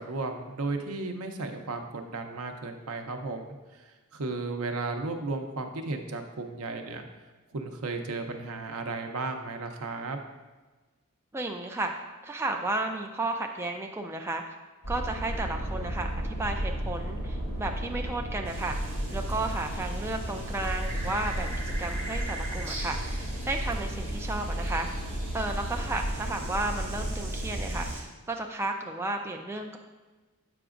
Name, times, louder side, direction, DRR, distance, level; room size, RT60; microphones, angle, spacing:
voice 1, 0.0-3.5 3.7-7.1 7.5-10.2, right 3 dB, 75° right, 5 dB, 0.6 m, -34 dB
voice 2, 11.3-11.9 12.2-14.4 14.9-18.8 19.1-24.9 25.3-29.8, right 2 dB, 10° right, 3 dB, 0.3 m, -33 dB
sound 1, 14.8-27.9, right 1 dB, 70° left, 1.7 m, -33 dB
sound 2, 18.5-28.0, right 2 dB, 30° right, 1.8 m, -43 dB
7.8 x 5.9 x 2.5 m, 1.2 s
head